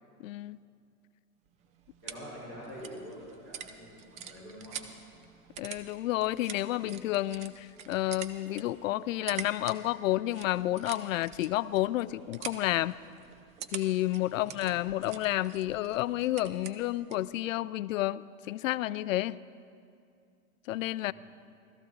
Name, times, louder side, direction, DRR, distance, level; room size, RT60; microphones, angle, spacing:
voice 1, 0.2-0.6 5.6-12.9 13.7-19.4 20.7-21.1, left 15 dB, 65° left, 18 dB, 0.5 m, -30 dB
sound 1, 1.4-17.3, right 8 dB, 15° right, 0.4 m, -46 dB
voice 2, 2.0-4.8 14.3-14.9 21.0-21.1, equal, 35° right, -7 dB, 4.4 m, -46 dB
17.0 x 13.5 x 3.9 m, 2.4 s
hypercardioid pair, 105°, 44 cm